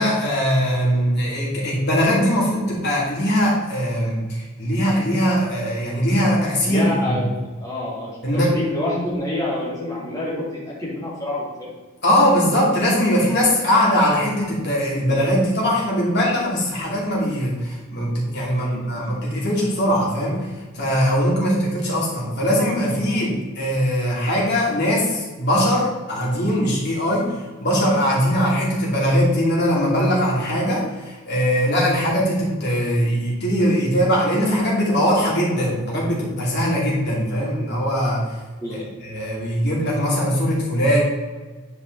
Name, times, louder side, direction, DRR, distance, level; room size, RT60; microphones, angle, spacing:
voice 1, 0.0-7.2 8.2-8.5 12.0-38.2 39.0-41.0, equal, 50° left, -5 dB, 2.8 m, -21 dB
voice 2, 6.6-7.3 7.6-11.7 18.6-19.1 38.6-38.8, left 1 dB, 15° left, -6 dB, 2.8 m, -27 dB
10.0 x 4.8 x 4.0 m, 1.3 s
head